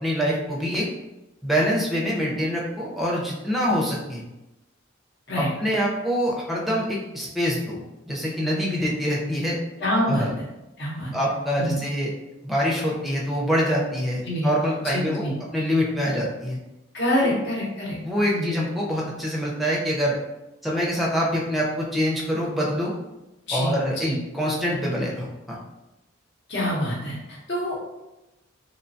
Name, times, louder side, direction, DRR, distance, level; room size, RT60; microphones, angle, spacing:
voice 1, 0.0-0.9 1.4-4.2 5.4-7.8 8.1-9.6 10.0-10.3 11.1-12.1 12.4-16.6 17.2-17.3 18.0-20.2 20.6-22.9 23.5-24.1 24.3-25.6, equal, ahead, -4 dB, 0.5 m, -25 dB
voice 2, 9.8-10.4 10.8-11.1 11.6-11.8 14.3-14.5 14.9-15.4 16.9-18.0 18.3-18.5 23.5-23.7 24.0-24.2 26.5-28.0, equal, 60° left, -4 dB, 0.8 m, -26 dB
3.0 x 2.2 x 2.6 m, 0.98 s
head